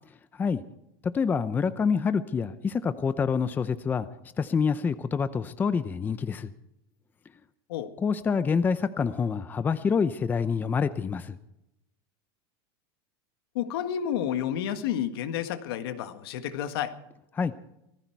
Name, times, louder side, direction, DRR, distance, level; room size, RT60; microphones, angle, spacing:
voice 1, 1.1-4.1 4.4-6.5 8.0-11.4 17.4-17.5, left 5 dB, 15° left, 13 dB, 0.6 m, -26 dB
voice 2, 13.5-16.9, left 10 dB, 75° left, 9 dB, 1.7 m, -30 dB
18.5 x 15.0 x 4.6 m, 0.86 s
supercardioid pair, 155°, 13 cm